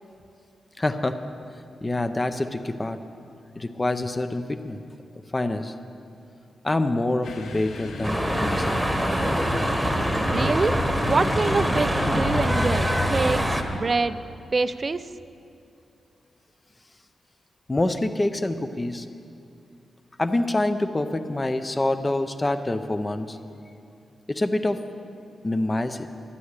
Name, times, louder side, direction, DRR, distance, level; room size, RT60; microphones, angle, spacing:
voice 1, 0.8-1.2 1.8-3.0 3.6-4.8 5.3-5.7 6.6-8.8 17.7-19.1 20.2-23.4 24.3-24.8 25.4-26.1, left 2 dB, 20° left, 8 dB, 0.6 m, -26 dB
sound 1, 7.2-13.8, left 3 dB, 85° left, 1.2 m, -33 dB
sound 2, 8.0-13.6, equal, 5° right, 1.1 m, -24 dB
voice 2, 10.3-10.8 11.0-14.2 14.5-15.1, right 3 dB, 35° right, 13 dB, 0.4 m, -25 dB
12.5 x 9.8 x 8.2 m, 2.5 s
wide cardioid pair, 130°, 0 cm